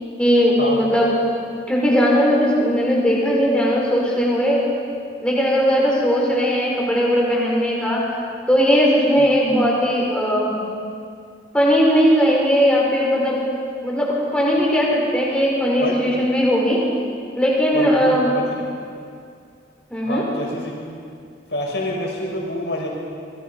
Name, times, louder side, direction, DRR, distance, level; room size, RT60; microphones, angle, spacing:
voice 1, 0.2-1.1 1.7-4.7 5.2-8.1 8.5-10.5 11.5-13.4 13.8-16.8 17.3-18.3 19.9-20.3, equal, 5° left, -4 dB, 5.5 m, -18 dB
voice 2, 15.8-16.1 17.7-18.6 20.0-20.7 21.5-22.9, left 1 dB, 70° left, -2 dB, 6.4 m, -27 dB
27.5 x 22.5 x 5.6 m, 2.3 s
head